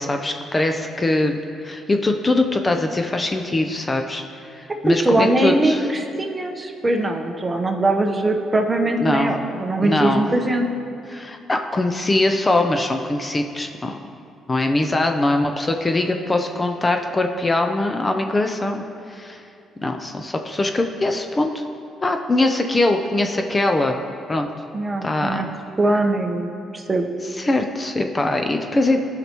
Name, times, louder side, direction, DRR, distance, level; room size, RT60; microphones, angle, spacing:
voice 1, 0.0-5.9 9.0-9.4 9.8-10.3 11.1-14.0 14.5-19.5 19.8-21.6 22.0-24.0 24.3-24.5 25.0-25.5 27.3-29.0, left 2 dB, 25° left, 5 dB, 0.6 m, -22 dB
voice 2, 4.9-10.7 24.7-25.5 25.8-27.1, right 2 dB, 25° right, 3 dB, 0.9 m, -21 dB
15.5 x 5.8 x 3.0 m, 2.5 s
cardioid pair, 90°, 0 cm